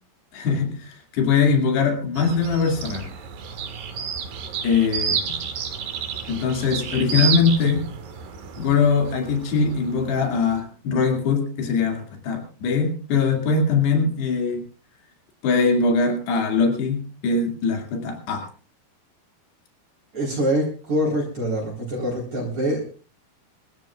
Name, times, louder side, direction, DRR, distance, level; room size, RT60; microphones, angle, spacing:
voice 1, 0.3-3.1 4.6-5.2 6.3-7.8 8.6-14.6 15.4-18.5, left 5 dB, 80° left, 3 dB, 4.5 m, -22 dB
sound 1, 2.2-10.6, right 7 dB, 60° right, 3.2 m, -31 dB
voice 2, 20.1-22.8, equal, 45° right, -3 dB, 5.0 m, -24 dB
26.5 x 14.0 x 2.4 m, 0.37 s
omnidirectional pair, 4.7 m